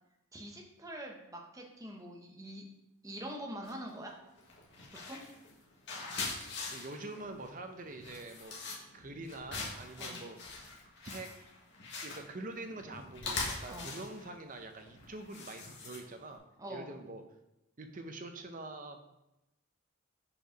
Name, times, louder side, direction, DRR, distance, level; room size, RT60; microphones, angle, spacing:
voice 1, 0.3-2.6 3.0-4.1 4.9-5.2 10.0-10.2 13.7-13.9 16.6-16.9, right 1 dB, 15° right, 1 dB, 0.9 m, -44 dB
sound 1, 3.6-3.9 4.4-16.3, left 3 dB, 55° left, 1.5 m, -42 dB
voice 2, 6.7-8.6 8.9-10.4 11.0-11.3 12.0-16.4 16.7-17.2 17.8-19.0, right 2 dB, 40° right, 6 dB, 0.7 m, -45 dB
5.4 x 4.7 x 5.0 m, 0.91 s
head